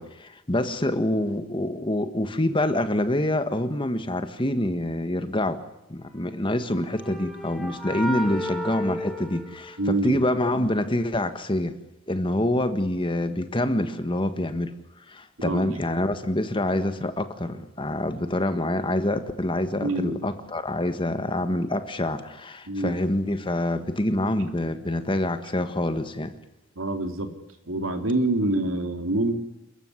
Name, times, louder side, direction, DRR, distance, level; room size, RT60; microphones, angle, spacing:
voice 1, 0.0-5.6 5.9-11.8 12.1-14.7 15.1-26.3, left 1 dB, 25° left, 9 dB, 1.6 m, -26 dB
sound 1, 6.3-10.2, left 1 dB, ahead, 3.2 m, -34 dB
voice 2, 9.8-10.2 15.4-15.8 19.8-20.2 22.7-23.0 26.8-27.3 27.7-29.4, right 2 dB, 80° right, 6 dB, 3.2 m, -26 dB
29.0 x 14.5 x 9.8 m, 0.93 s
head